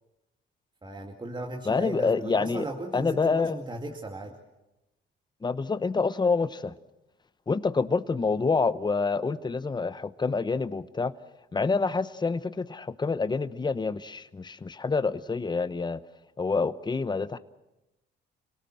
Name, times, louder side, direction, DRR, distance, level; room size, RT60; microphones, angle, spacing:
voice 1, 0.8-4.3, right 2 dB, 25° right, 1 dB, 2.5 m, -36 dB
voice 2, 1.7-2.7 2.9-3.6 5.4-6.7 7.5-11.1 11.5-16.0 16.4-17.4, left 4 dB, 20° left, 14 dB, 0.9 m, -27 dB
27.5 x 18.0 x 7.7 m, 0.98 s
cardioid pair, 90°, 20 cm